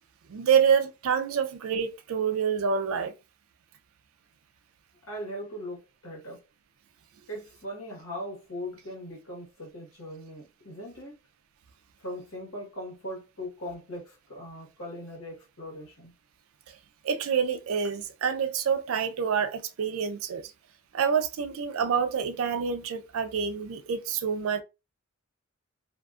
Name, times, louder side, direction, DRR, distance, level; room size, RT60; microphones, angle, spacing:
voice 1, 0.3-3.1 17.0-20.5 20.9-24.6, right 7 dB, 80° right, 0.4 m, -27 dB
voice 2, 5.0-6.4 7.3-11.2 12.0-16.1, equal, 90° left, 1.2 m, -39 dB
2.5 x 2.4 x 2.3 m
head